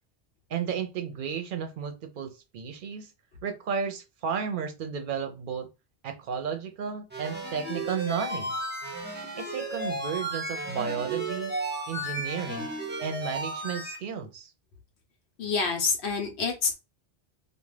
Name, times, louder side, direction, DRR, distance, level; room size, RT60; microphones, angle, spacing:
voice 1, 0.5-3.1 3.4-5.7 6.0-8.6 9.4-11.5 11.9-12.7 13.0-14.5, right 7 dB, 60° right, 0.7 m, -33 dB
sound 1, 7.1-14.0, right 1 dB, 15° right, 0.5 m, -34 dB
voice 2, 15.4-16.7, left 5 dB, 90° left, 1.0 m, -27 dB
2.3 x 2.3 x 3.2 m
omnidirectional pair, 1.1 m